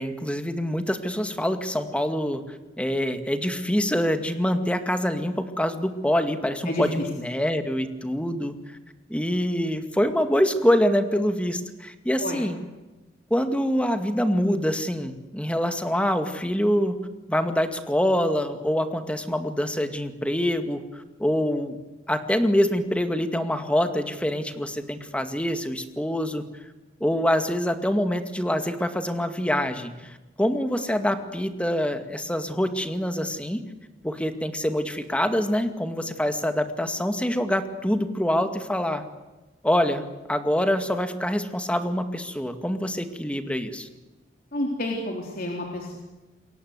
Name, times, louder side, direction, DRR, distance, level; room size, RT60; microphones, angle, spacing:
voice 1, 0.0-8.6 9.1-12.6 13.3-17.0 17.3-21.8 22.1-26.4 27.0-33.6 34.0-39.0 39.6-43.9, equal, 5° left, 8 dB, 2.1 m, -25 dB
voice 2, 44.5-46.0, left 1 dB, 55° left, 1 dB, 3.8 m, -29 dB
28.0 x 22.5 x 8.2 m, 1.1 s
head